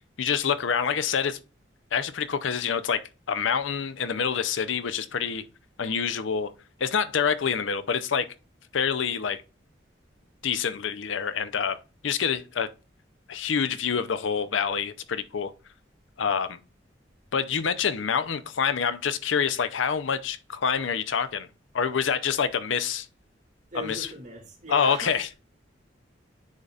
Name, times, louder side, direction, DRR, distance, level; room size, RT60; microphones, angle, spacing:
voice 1, 0.2-1.4 1.9-3.0 3.3-5.4 5.8-6.5 6.8-8.3 8.7-9.4 10.4-12.7 13.3-15.5 16.2-16.6 17.3-21.5 21.7-23.1 23.7-24.1 24.7-25.3, left 6 dB, 80° left, 0.6 m, -26 dB
voice 2, 23.7-25.3, right 2 dB, 40° right, 2.2 m, -39 dB
9.8 x 4.0 x 2.4 m
head